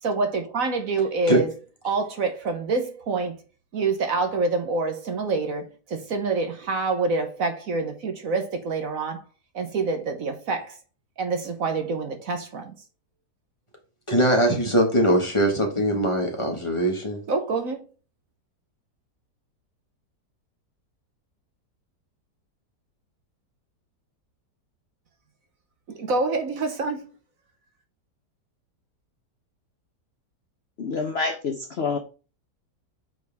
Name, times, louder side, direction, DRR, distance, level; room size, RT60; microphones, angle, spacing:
voice 1, 0.0-1.5 1.8-3.4 3.7-9.2 9.5-10.8 11.2-12.7 17.3-17.8 25.9-27.1, right 3 dB, 55° right, 1.3 m, -26 dB
voice 2, 14.1-17.2, right 1 dB, 20° left, 1.8 m, -21 dB
voice 3, 30.8-32.0, left 4 dB, 50° left, 0.8 m, -27 dB
8.5 x 4.8 x 3.5 m
omnidirectional pair, 1.8 m